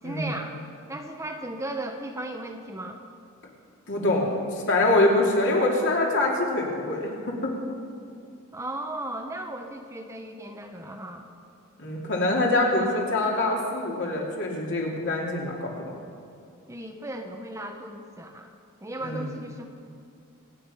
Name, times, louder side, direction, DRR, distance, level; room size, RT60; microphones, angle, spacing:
voice 1, 0.0-0.5 0.9-3.0 8.5-11.3 16.7-18.5 18.8-19.7, right 1 dB, 15° right, 4 dB, 0.8 m, -36 dB
voice 2, 3.9-7.5 11.8-16.0 19.0-19.3, left 2 dB, 55° left, -2 dB, 2.9 m, -25 dB
25.5 x 9.3 x 5.6 m, 2.4 s
head